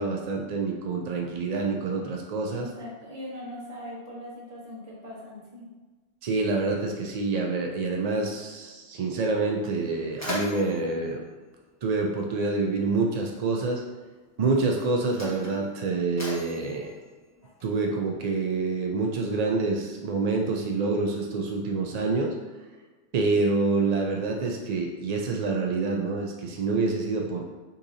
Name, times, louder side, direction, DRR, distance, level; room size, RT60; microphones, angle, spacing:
voice 1, 0.0-2.7 6.2-11.2 11.8-13.8 14.4-16.9 17.6-22.3 23.1-27.4, right 3 dB, 70° right, 1 dB, 0.4 m, -27 dB
voice 2, 2.5-5.7, left 1 dB, 35° right, -5 dB, 1.2 m, -40 dB
Mechanisms, 9.7-12.4 13.4-13.6 14.4-18.0, left 2 dB, 15° left, 1.0 m, -40 dB
6.6 x 2.8 x 2.6 m, 1.3 s
omnidirectional pair, 1.2 m